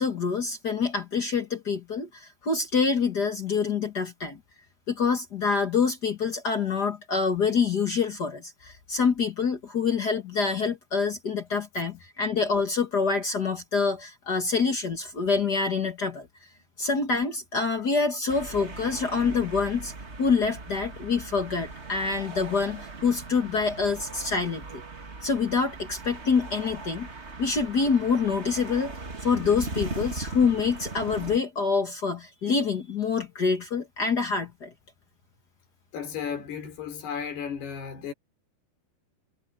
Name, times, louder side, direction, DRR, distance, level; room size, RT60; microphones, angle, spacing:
voice 1, 0.0-4.4 4.9-16.3 16.8-19.9 20.2-24.8 25.2-27.1 27.4-34.7, left 5 dB, 55° left, 1.1 m, -26 dB
sound 1, 18.3-31.4, right 3 dB, 50° right, 0.8 m, -39 dB
voice 2, 29.4-30.5 35.9-38.1, left 7 dB, 80° left, 6.4 m, -36 dB
omnidirectional pair, 4.6 m